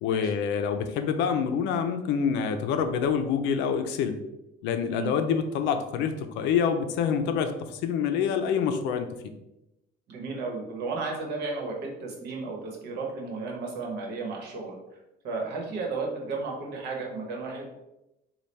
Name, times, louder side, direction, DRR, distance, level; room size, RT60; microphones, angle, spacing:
voice 1, 0.0-4.2 4.6-9.1, left 7 dB, 85° left, 8 dB, 0.5 m, -26 dB
voice 2, 10.1-14.8 15.2-17.7, right 3 dB, 70° right, 0 dB, 1.1 m, -33 dB
4.1 x 2.3 x 3.3 m, 0.93 s
cardioid pair, 160°, 18 cm